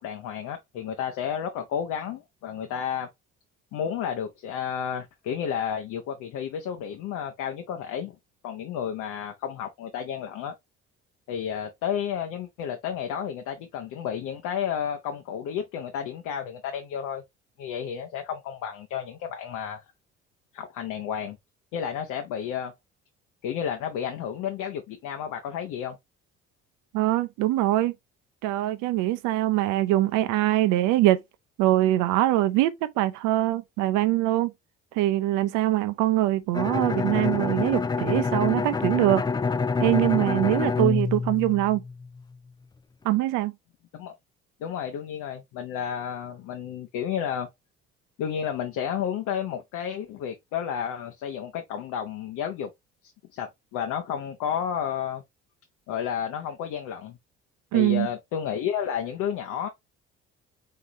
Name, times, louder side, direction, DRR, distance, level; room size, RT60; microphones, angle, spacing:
voice 1, 0.0-3.1 3.7-8.1 8.4-10.5 11.3-17.2 17.6-19.8 20.5-21.4 21.7-22.7 23.4-26.0 43.9-44.1 44.6-47.5 48.2-52.7 53.0-55.2 55.9-57.2 57.7-59.7, left 8 dB, 70° left, 0.9 m, -31 dB
voice 2, 26.9-28.0 28.4-31.2 31.6-34.5 34.9-39.2 39.8-41.8 43.0-43.5 57.7-58.1, right 15 dB, 75° right, 0.6 m, -23 dB
Bowed string instrument, 36.5-42.2, left 4 dB, 15° left, 0.4 m, -27 dB
4.4 x 3.8 x 3.0 m
hypercardioid pair, 60°, 31 cm